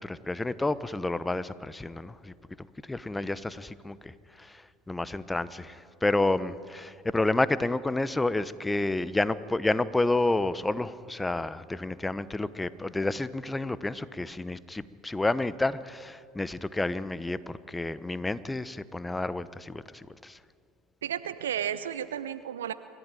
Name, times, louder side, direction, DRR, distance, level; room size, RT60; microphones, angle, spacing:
voice 1, 0.0-2.3 2.8-20.4, left 2 dB, 10° left, 16 dB, 0.9 m, -30 dB
voice 2, 21.0-22.7, right 9 dB, 80° right, 14 dB, 0.8 m, -33 dB
27.0 x 14.0 x 9.1 m, 2.4 s
hypercardioid pair, 70°, 0 cm